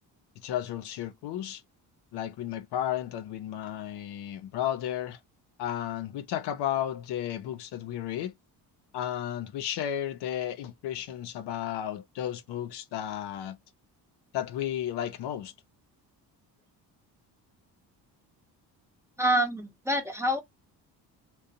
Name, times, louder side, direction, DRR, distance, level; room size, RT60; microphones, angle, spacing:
voice 1, 0.4-1.6 2.1-5.2 5.6-8.3 8.9-13.6 14.3-15.5, left 11 dB, 75° left, 0.6 m, -33 dB
voice 2, 19.2-20.4, equal, 5° right, 0.7 m, -26 dB
2.5 x 2.1 x 2.6 m
cardioid pair, 90°, 41 cm